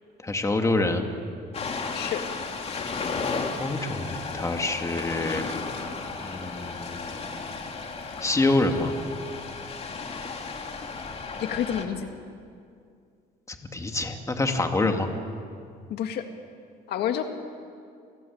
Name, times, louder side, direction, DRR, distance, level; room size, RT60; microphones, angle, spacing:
voice 1, 0.2-1.1 3.6-5.5 6.2-7.1 8.2-8.9 13.5-15.1, left 2 dB, 20° left, 4 dB, 2.4 m, -26 dB
Ocean, 1.5-11.8, left 4 dB, 35° left, 2.8 m, -34 dB
voice 2, 11.4-12.1 14.8-14.9 15.9-16.3 16.9-17.2, left 10 dB, 75° left, 6 dB, 1.9 m, -28 dB
29.0 x 18.5 x 8.7 m, 2.3 s
cardioid pair, 110°, 17 cm